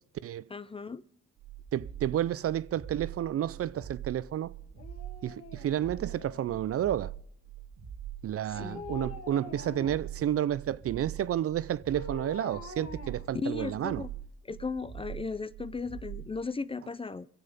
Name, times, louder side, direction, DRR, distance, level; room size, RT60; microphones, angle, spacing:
voice 1, 0.5-1.0 8.5-8.8 13.3-14.1 14.4-17.3, left 4 dB, 20° left, 0.4 m, -36 dB
sound 1, 1.4-16.3, right 10 dB, 70° right, 1.4 m, -43 dB
voice 2, 1.7-4.5 5.2-7.1 8.2-14.0, right 11 dB, 50° right, 0.5 m, -31 dB
Dog, 4.8-6.8 8.5-10.2 11.9-14.0 14.4-14.5, left 3 dB, 55° left, 1.9 m, -45 dB
23.5 x 7.9 x 5.3 m
cardioid pair, 90°, 30 cm